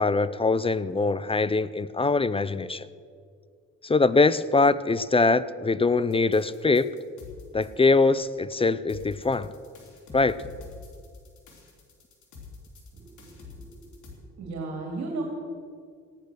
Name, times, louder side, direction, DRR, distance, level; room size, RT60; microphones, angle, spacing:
voice 1, 0.0-2.9 3.8-6.9 7.5-9.5 10.1-10.4, left 3 dB, 20° left, 16 dB, 0.4 m, -23 dB
sound 1, 6.1-7.7 8.9-14.1, left 4 dB, 75° left, 3.7 m, -46 dB
voice 2, 12.9-13.8 14.1-15.2, right 3 dB, 65° right, 0 dB, 2.5 m, -36 dB
16.0 x 10.0 x 6.3 m, 2.1 s
cardioid pair, 90°, 30 cm